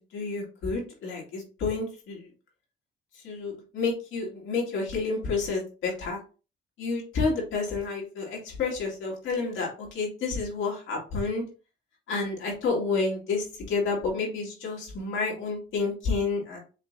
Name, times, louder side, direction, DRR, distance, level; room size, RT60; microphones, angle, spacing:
voice 1, 0.1-2.3 3.2-6.2 6.8-11.4 12.1-16.6, left 4 dB, 80° left, -2 dB, 2.2 m, -30 dB
5.5 x 3.4 x 2.6 m, 0.34 s
cardioid pair, 90°, 20 cm